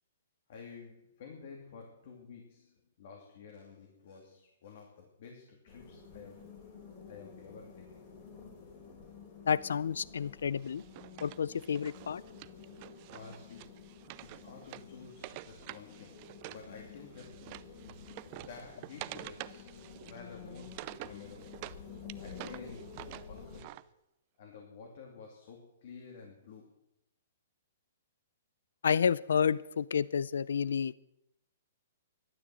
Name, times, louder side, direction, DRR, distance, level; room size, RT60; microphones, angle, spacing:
voice 1, 0.5-6.4 7.1-8.0 13.1-13.9 14.2-18.1 18.4-21.6 22.2-23.0 23.3-23.7 24.4-26.7, left 5 dB, 45° left, 1 dB, 2.6 m, -51 dB
sound 1, 5.7-23.6, left 5 dB, 25° left, 3.4 m, -51 dB
voice 2, 9.5-10.8 11.2-12.2 28.8-30.9, left 7 dB, 85° left, 21 dB, 0.5 m, -30 dB
Wood, 10.6-16.7 16.9-21.8 22.1-23.8, right 18 dB, 25° right, 0.5 m, -48 dB
13.5 x 12.0 x 7.7 m, 0.84 s
hypercardioid pair, 175°, 0 cm